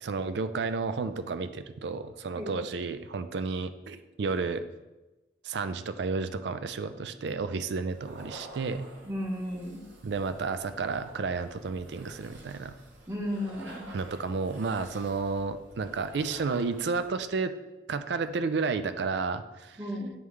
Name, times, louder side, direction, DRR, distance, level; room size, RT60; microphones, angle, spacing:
voice 1, 0.0-4.6 5.4-8.9 10.0-12.7 13.9-17.5 17.9-19.8, right 4 dB, 65° right, 11 dB, 0.4 m, -31 dB
sound 1, 7.9-17.2, right 2 dB, 85° right, 0.9 m, -49 dB
voice 2, 9.0-9.8 13.1-14.0 19.8-20.1, equal, 15° right, -2 dB, 0.9 m, -34 dB
9.2 x 3.5 x 3.2 m, 1.1 s
head